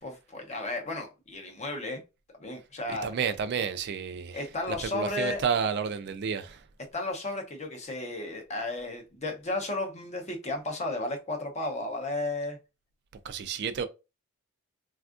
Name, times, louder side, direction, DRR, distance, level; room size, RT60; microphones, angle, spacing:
voice 1, 0.0-2.0 2.4-3.1 4.3-5.4 6.9-12.6, left 2 dB, 30° left, 0.6 m, -33 dB
voice 2, 2.9-4.4 4.7-6.6 13.2-13.9, right 6 dB, 50° right, 0.3 m, -30 dB
3.4 x 2.3 x 2.4 m
head